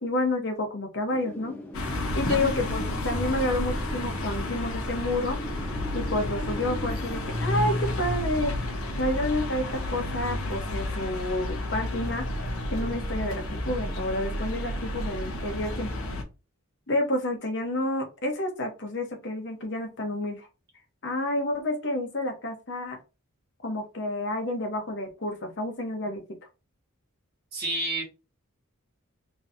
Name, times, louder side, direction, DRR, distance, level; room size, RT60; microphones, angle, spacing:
voice 1, 0.0-1.5 2.2-5.4 5.9-8.5 9.0-12.2 12.7-16.0 16.9-20.5 21.0-23.0 23.6-26.2, left 1 dB, 55° left, 1.1 m, -29 dB
Wind, 1.1-9.8, equal, 10° left, 0.8 m, -41 dB
sound 1, 1.7-16.2, left 1 dB, 75° left, 1.0 m, -31 dB
voice 2, 27.5-28.0, right 1 dB, 45° right, 1.7 m, -30 dB
3.6 x 3.1 x 2.7 m
head